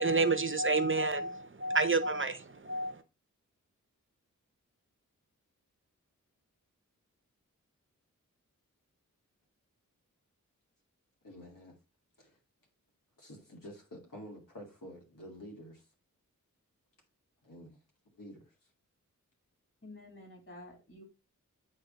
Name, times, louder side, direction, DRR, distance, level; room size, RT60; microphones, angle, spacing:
voice 1, 0.0-2.9, right 3 dB, 40° right, 0.7 m, -29 dB
voice 2, 11.2-11.8 12.2-12.4 13.2-15.9 17.4-17.8 18.1-18.5, equal, 85° left, 2.4 m, -49 dB
voice 3, 19.8-21.0, left 1 dB, 40° left, 3.3 m, -50 dB
8.7 x 3.6 x 4.0 m
wide cardioid pair, 65°, 32 cm